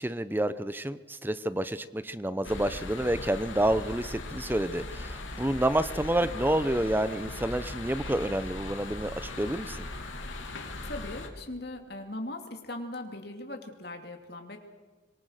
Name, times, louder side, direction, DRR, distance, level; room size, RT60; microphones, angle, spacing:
voice 1, 0.0-9.9, right 1 dB, 10° right, 14 dB, 0.7 m, -29 dB
sound 1, 2.4-11.3, left 2 dB, 85° left, 2.8 m, -39 dB
voice 2, 10.4-14.6, left 1 dB, 55° left, 4 dB, 2.8 m, -40 dB
25.5 x 19.5 x 6.6 m, 1.4 s
head